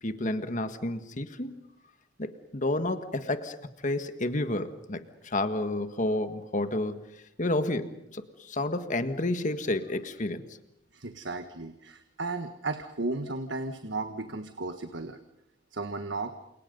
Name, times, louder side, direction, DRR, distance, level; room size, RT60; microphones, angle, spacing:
voice 1, 0.0-1.6 2.2-3.6 3.8-7.0 7.4-10.4, left 2 dB, 45° left, 9 dB, 1.7 m, -30 dB
voice 2, 10.9-15.2 15.7-16.3, right 3 dB, 70° right, 8 dB, 1.5 m, -34 dB
30.0 x 28.0 x 5.4 m, 0.82 s
head